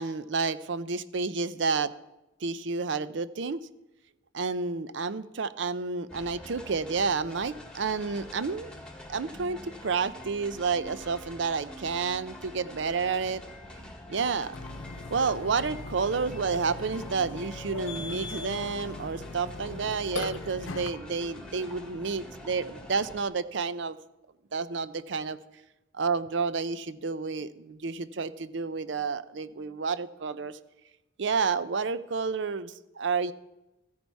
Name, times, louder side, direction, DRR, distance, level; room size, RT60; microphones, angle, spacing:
voice 1, 0.0-1.9 2.4-3.6 4.3-8.7 9.1-13.4 14.1-14.5 15.1-24.0 24.5-25.4 25.9-30.6 31.2-33.3, right 5 dB, 65° right, 15 dB, 0.6 m, -30 dB
sound 1, 6.1-23.2, left 1 dB, 5° left, 1.5 m, -46 dB
Burping eructation, 14.5-20.9, left 3 dB, 90° left, 0.8 m, -40 dB
14.0 x 9.6 x 4.6 m, 0.97 s
head